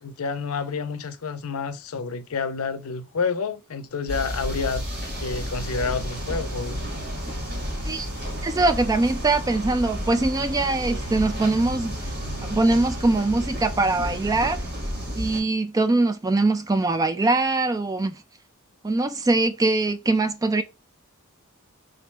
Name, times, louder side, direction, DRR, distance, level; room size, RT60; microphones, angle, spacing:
voice 1, 0.0-4.9 5.2-6.8, left 5 dB, 75° left, 0.5 m, -29 dB
sound 1, 4.1-15.4, equal, 45° right, 2.2 m, -31 dB
sound 2, 5.1-15.2, right 1 dB, 70° right, 1.0 m, -44 dB
voice 2, 8.4-12.1 12.4-14.6 15.2-18.2 18.8-20.6, right 2 dB, 15° right, 0.3 m, -22 dB
3.8 x 3.1 x 3.2 m
head